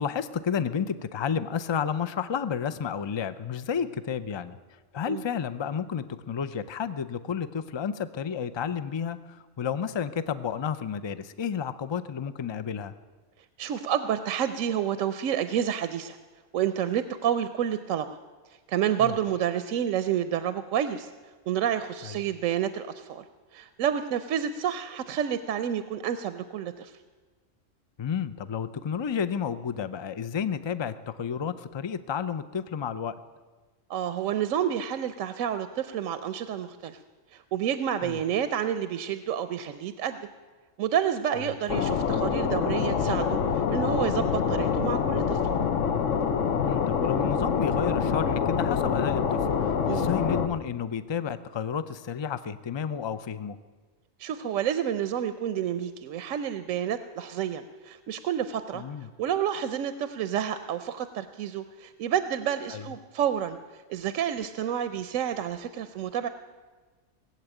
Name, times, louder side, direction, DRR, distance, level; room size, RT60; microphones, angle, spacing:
voice 1, 0.0-4.6 4.9-12.9 19.0-19.1 22.0-22.2 28.0-33.1 38.0-38.2 41.3-41.5 46.6-53.6 58.7-59.1 62.7-62.8, left 7 dB, 40° left, 13 dB, 0.3 m, -31 dB
voice 2, 13.6-16.2 16.5-18.2 18.7-21.1 21.5-23.2 23.5-26.9 33.9-37.0 37.3-40.2 40.8-45.4 49.9-50.1 54.2-58.8 59.2-66.3, right 9 dB, 85° right, 11 dB, 1.0 m, -29 dB
sound 1, 41.7-50.5, left 6 dB, 75° left, 1.2 m, -26 dB
19.0 x 8.0 x 9.0 m, 1.3 s
omnidirectional pair, 1.3 m